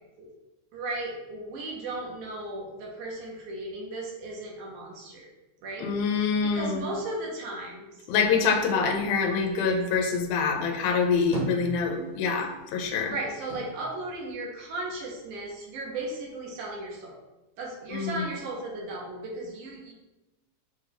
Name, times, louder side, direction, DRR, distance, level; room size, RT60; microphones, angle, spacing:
voice 1, 0.7-5.3 5.6-8.0 13.1-17.2 17.6-19.9, right 2 dB, 80° right, -1 dB, 2.3 m, -36 dB
voice 2, 5.8-6.9 8.1-13.1 17.9-18.3, left 5 dB, 80° left, 3 dB, 2.0 m, -25 dB
sound 1, 10.9-12.4 12.7-15.1 15.4-16.3, right 1 dB, 55° right, 1.3 m, -38 dB
6.1 x 2.3 x 3.5 m, 1.0 s
omnidirectional pair, 3.5 m